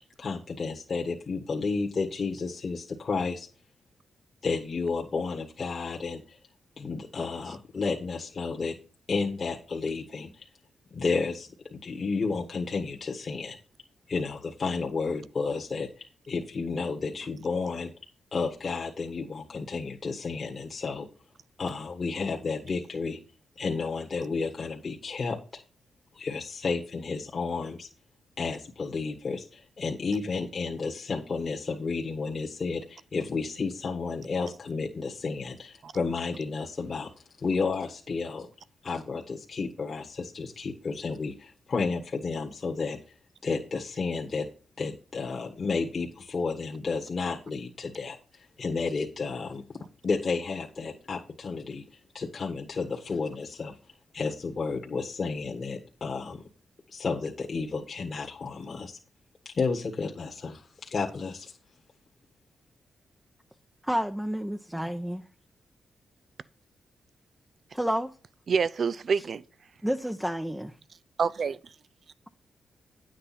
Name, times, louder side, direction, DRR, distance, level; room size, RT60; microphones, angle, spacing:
voice 1, 0.2-3.5 4.4-6.4 6.8-8.8 9.1-10.4 10.9-13.6 14.1-17.9 18.3-21.1 21.6-23.2 23.6-25.6 26.1-27.9 28.4-37.1 37.4-38.5 38.8-43.0 43.4-44.5 44.8-49.8 50.0-51.8 52.1-53.7 54.1-56.4 56.9-59.0 59.4-61.5, left 4 dB, 50° left, 1.5 m, -32 dB
voice 2, 63.8-65.2 67.7-68.1 69.8-70.7, equal, 5° right, 0.8 m, -30 dB
voice 3, 68.5-69.4 71.2-71.6, right 5 dB, 60° right, 0.4 m, -26 dB
9.5 x 7.9 x 4.3 m
cardioid pair, 55°, 0 cm